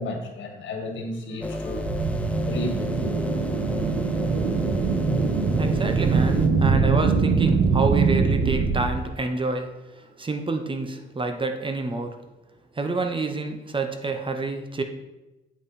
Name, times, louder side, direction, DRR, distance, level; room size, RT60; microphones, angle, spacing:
voice 1, 0.0-1.9 2.3-3.3, left 2 dB, 70° left, 3 dB, 1.9 m, -33 dB
sound 1, 1.4-6.5, left 1 dB, 5° left, 0.8 m, -32 dB
sound 2, 1.6-8.8, right 4 dB, 75° right, 1.4 m, -23 dB
voice 2, 5.6-9.7 10.2-12.2 12.8-14.8, right 3 dB, 25° right, 6 dB, 0.9 m, -28 dB
8.4 x 5.5 x 4.2 m, 1.0 s
cardioid pair, 90°, 20 cm